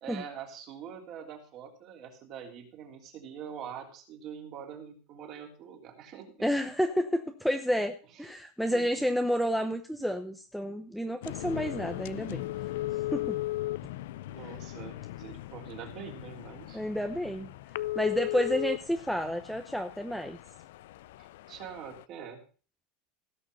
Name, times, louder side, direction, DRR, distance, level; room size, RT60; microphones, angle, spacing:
voice 1, 0.0-6.5 8.7-9.1 14.3-16.8 21.2-22.4, right 8 dB, 35° right, 3 dB, 3.2 m, -44 dB
voice 2, 6.4-12.5 13.1-13.4 16.7-17.5 17.9-20.4, equal, ahead, 5 dB, 0.8 m, -30 dB
sound 1, 11.2-22.0, left 16 dB, 75° left, 0.5 m, -37 dB
17.0 x 6.6 x 5.2 m, 0.38 s
supercardioid pair, 165°, 0 cm